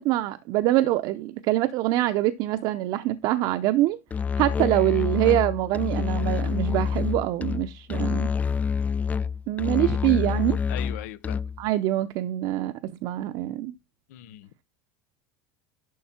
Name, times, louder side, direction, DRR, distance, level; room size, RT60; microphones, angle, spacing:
voice 1, 0.0-4.0 4.4-8.3 9.5-10.6 11.6-13.7, right 15 dB, 55° right, 0.7 m, -24 dB
Musical instrument, 4.1-11.7, left 6 dB, 20° left, 0.4 m, -27 dB
voice 2, 10.7-11.5 14.1-14.5, left 14 dB, 80° left, 0.8 m, -39 dB
11.0 x 4.6 x 4.4 m
supercardioid pair, 120°, 8 cm